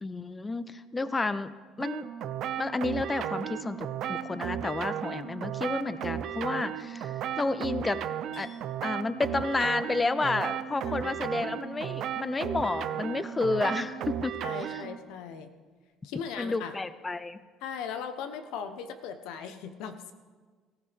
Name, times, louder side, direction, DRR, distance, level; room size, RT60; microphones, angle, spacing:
voice 1, 0.0-1.5 1.8-2.1 2.6-8.0 8.4-8.5 8.8-14.8 16.4-17.4, left 3 dB, 15° left, 14 dB, 0.5 m, -31 dB
sound 1, 1.8-15.0, right 9 dB, 55° right, 0.7 m, -35 dB
Chink clink, 8.3-14.3 14.6-15.0, left 2 dB, 55° left, 5.6 m, -61 dB
voice 2, 10.8-11.5 12.9-13.1 13.5-13.6 14.4-15.5 16.0-16.7 17.6-20.1, left 7 dB, 80° left, 9 dB, 1.1 m, -39 dB
18.0 x 15.5 x 3.6 m, 1.5 s
cardioid pair, 155°, 0 cm